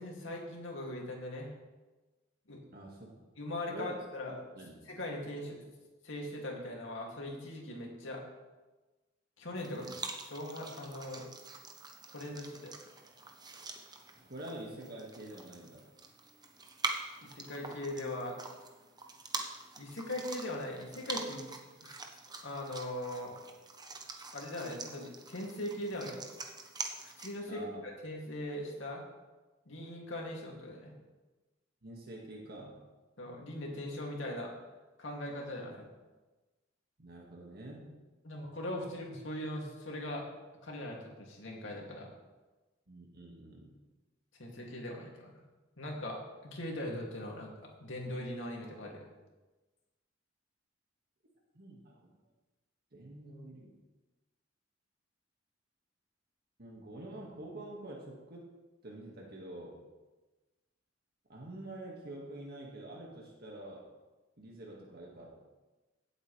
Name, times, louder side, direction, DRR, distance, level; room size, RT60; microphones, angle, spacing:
voice 1, 0.0-1.5 2.5-2.6 3.4-4.3 4.8-5.6 6.0-8.2 9.4-10.0 10.3-11.3 12.1-12.7 17.2-18.4 19.8-21.5 21.8-22.0 22.4-23.3 24.3-26.2 27.2-29.0 29.7-30.9 33.2-34.5 35.0-35.9 38.2-40.2 40.6-42.1 44.4-45.3 45.8-47.5 47.8-49.0, left 1 dB, 75° left, -1 dB, 2.5 m, -40 dB
voice 2, 2.7-3.3 3.7-3.9 4.6-4.8 9.8-10.0 14.2-15.8 27.5-27.8 31.8-32.8 37.0-37.9 42.9-43.8 51.5-52.1 52.9-53.7 56.6-58.5 58.8-59.8 61.3-63.9 64.4-65.3, right 1 dB, 55° right, -1 dB, 1.9 m, -47 dB
sound 1, 9.6-27.4, right 3 dB, 20° right, 1.0 m, -45 dB
16.5 x 8.0 x 3.3 m, 1.2 s
head